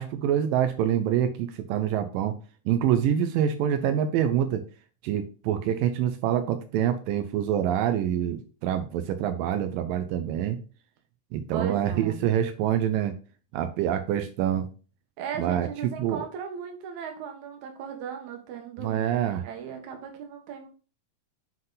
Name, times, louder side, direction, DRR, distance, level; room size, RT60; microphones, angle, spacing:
voice 1, 0.0-2.3 2.7-4.6 5.0-10.6 11.3-13.2 13.5-14.7 15.4-15.7 16.0-16.2 18.8-19.5, right 10 dB, 85° right, 8 dB, 2.4 m, -26 dB
voice 2, 11.5-12.2 15.2-19.0 19.3-20.7, right 7 dB, 65° right, 4 dB, 2.4 m, -37 dB
7.5 x 3.9 x 3.9 m, 0.37 s
omnidirectional pair, 3.9 m